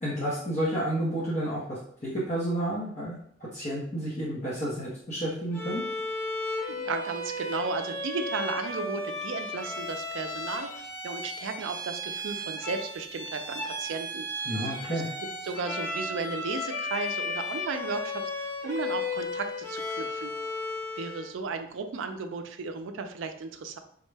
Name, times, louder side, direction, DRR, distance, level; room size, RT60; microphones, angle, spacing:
voice 1, 0.0-5.8 14.5-15.1, right 1 dB, 35° left, -8 dB, 0.7 m, -31 dB
Bowed string instrument, 5.5-21.3, left 2 dB, 10° left, 0.9 m, -34 dB
voice 2, 6.7-14.6 14.9-15.0 15.4-20.3 21.0-23.8, right 4 dB, 75° right, 7 dB, 0.4 m, -35 dB
3.6 x 2.1 x 3.2 m, 0.65 s
head